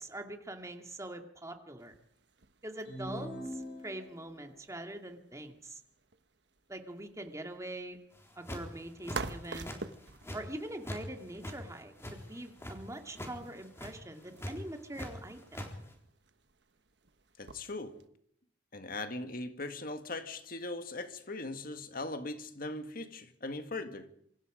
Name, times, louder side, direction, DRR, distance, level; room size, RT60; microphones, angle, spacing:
voice 1, 0.0-1.9 2.6-3.3 3.8-5.8 6.7-8.0 8.4-9.7 10.3-15.4, right 1 dB, 15° right, 2.4 m, -43 dB
sound 1, 1.8-18.1, right 3 dB, 70° right, 1.2 m, -50 dB
sound 2, 2.9-4.4, equal, 70° left, 6.8 m, -42 dB
sound 3, 8.2-8.7 9.0-9.8 10.0-11.0 11.3-12.7 13.1-13.3 13.6-13.9 14.4-15.1 15.3-15.7, equal, 15° left, 3.9 m, -41 dB
voice 2, 17.4-18.0 18.7-24.1, left 2 dB, 50° left, 1.9 m, -40 dB
26.5 x 25.0 x 5.1 m
head